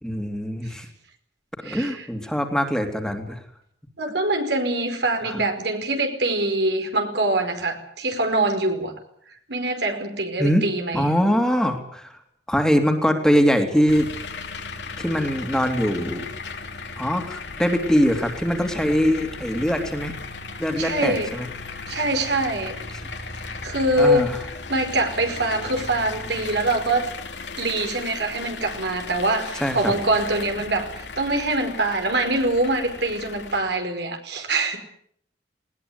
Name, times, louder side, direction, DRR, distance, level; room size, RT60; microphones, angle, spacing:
voice 1, 0.0-0.9 1.6-3.4 5.2-5.4 10.4-10.6 10.9-12.1 12.5-14.1 15.0-16.3 17.0-20.1 20.6-21.5 24.0-24.4 29.6-30.0, equal, 5° left, 4 dB, 2.8 m, -22 dB
voice 2, 1.6-2.1 4.0-8.9 9.5-11.1 20.8-21.3 21.9-22.8 23.3-24.3 24.7-27.1 27.6-34.8, right 2 dB, 75° right, 5 dB, 5.0 m, -24 dB
sound 1, 13.9-33.6, left 4 dB, 85° left, 3.2 m, -36 dB
20.0 x 19.0 x 9.6 m, 0.67 s
head